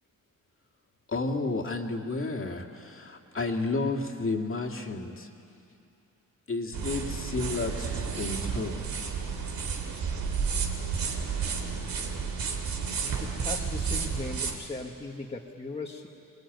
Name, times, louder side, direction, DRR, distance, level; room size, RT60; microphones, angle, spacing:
voice 1, 1.1-5.3 6.5-8.9, left 3 dB, 40° left, 2 dB, 2.3 m, -32 dB
sound 1, 6.7-14.6, right 5 dB, 80° right, 3.1 m, -31 dB
voice 2, 13.2-16.1, left 2 dB, 15° left, -1 dB, 1.6 m, -38 dB
25.5 x 22.0 x 9.4 m, 2.6 s
cardioid pair, 120°, 34 cm